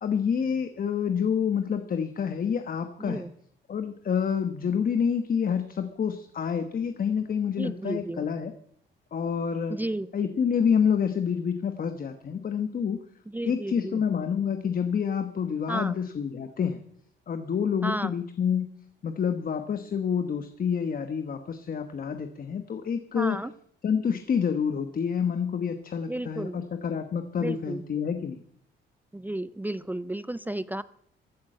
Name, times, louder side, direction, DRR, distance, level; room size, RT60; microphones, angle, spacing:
voice 1, 0.0-3.2 3.7-8.5 9.1-9.8 10.1-13.0 13.5-16.8 17.3-18.7 19.0-23.4 23.8-28.4, left 7 dB, 45° left, 8 dB, 1.2 m, -28 dB
voice 2, 3.0-3.3 7.5-8.3 9.7-10.1 13.3-14.0 15.7-15.9 17.8-18.1 23.1-23.5 26.1-26.6 27.4-27.9 29.1-30.8, right 1 dB, 10° right, 16 dB, 0.5 m, -32 dB
14.5 x 8.7 x 7.5 m, 0.67 s
cardioid pair, 90°, 20 cm